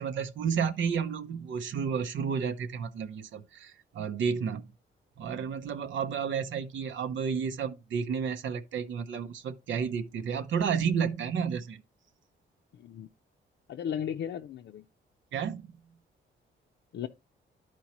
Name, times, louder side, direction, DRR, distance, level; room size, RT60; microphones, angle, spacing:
voice 1, 0.0-4.7 5.2-11.8 15.3-15.7, right 6 dB, 90° right, 0.8 m, -31 dB
voice 2, 13.7-14.8 16.9-17.1, left 9 dB, 80° left, 0.6 m, -35 dB
12.0 x 4.5 x 3.0 m
wide cardioid pair, 130°, 19 cm